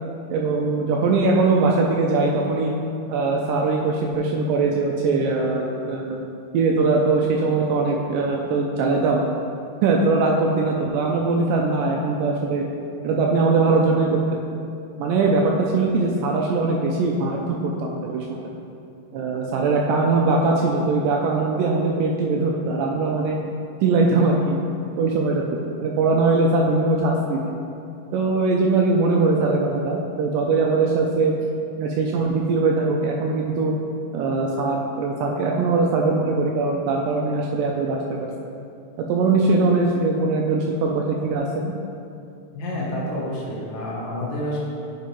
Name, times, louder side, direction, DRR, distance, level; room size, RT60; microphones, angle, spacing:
voice 1, 0.3-2.7 3.1-6.2 6.5-9.2 9.8-12.6 13.0-14.4 15.0-18.4 19.1-23.4 23.8-24.6 25.0-25.4 25.8-27.4 28.1-31.3 31.8-33.7 34.1-38.3 39.0-41.7, right 3 dB, 80° right, -1 dB, 2.1 m, -21 dB
voice 2, 42.5-44.6, left 1 dB, 90° left, -5 dB, 1.0 m, -29 dB
10.0 x 5.1 x 3.0 m, 2.6 s
omnidirectional pair, 3.9 m